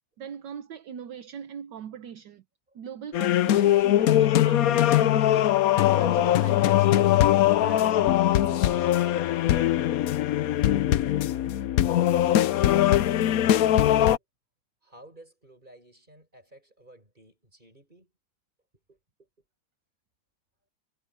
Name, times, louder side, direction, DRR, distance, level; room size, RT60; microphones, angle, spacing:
voice 1, 0.2-2.4 2.7-5.5 5.8-8.9, right 8 dB, 65° right, 1.5 m, -41 dB
sound 1, 3.1-14.2, left 12 dB, 70° left, 0.8 m, -21 dB
voice 2, 12.0-13.9 14.2-14.3 14.8-18.1 18.9-19.3, right 1 dB, 20° right, 7.4 m, -54 dB
omnidirectional pair, 2.2 m